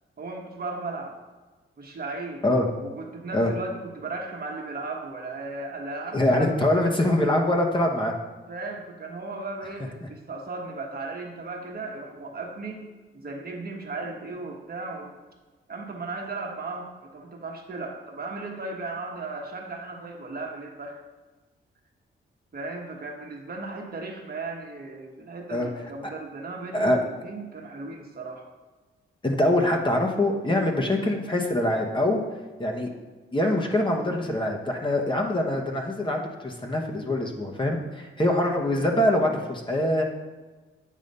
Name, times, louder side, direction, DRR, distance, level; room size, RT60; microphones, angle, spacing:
voice 1, 0.2-1.2 1.8-2.4 2.8-6.8 8.5-15.1 15.7-21.0 22.5-28.4, right 3 dB, 45° right, 1 dB, 1.2 m, -36 dB
voice 2, 6.1-8.1 25.5-25.7 26.7-27.0 29.2-32.2 32.6-32.9 33.3-40.0, left 1 dB, 25° left, 0 dB, 1.1 m, -24 dB
8.4 x 3.1 x 5.3 m, 1.3 s
cardioid pair, 70°, 21 cm